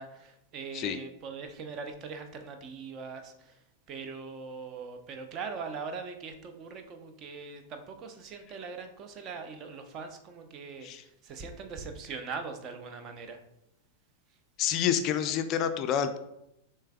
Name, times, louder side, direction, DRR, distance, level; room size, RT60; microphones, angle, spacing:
voice 1, 0.0-3.6 3.9-13.4, right 5 dB, 35° right, 7 dB, 0.5 m, -41 dB
voice 2, 14.6-16.2, left 9 dB, 35° left, 9 dB, 0.3 m, -28 dB
6.5 x 3.2 x 2.2 m, 0.83 s
figure-of-eight pair, 90°, 0 cm